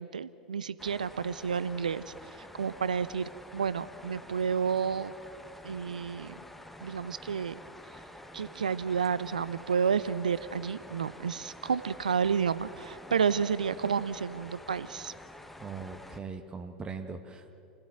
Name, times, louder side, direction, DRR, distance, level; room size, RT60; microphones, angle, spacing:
voice 1, 0.0-2.0 2.5-5.1 5.6-6.3 6.8-7.6 8.3-15.1, right 6 dB, 75° right, 17 dB, 0.6 m, -30 dB
sound 1, 0.8-16.2, left 1 dB, 5° left, 1.3 m, -49 dB
voice 2, 15.6-17.5, right 5 dB, 20° right, 6 dB, 1.5 m, -40 dB
28.5 x 16.0 x 7.8 m, 2.7 s
figure-of-eight pair, 85°, 4 cm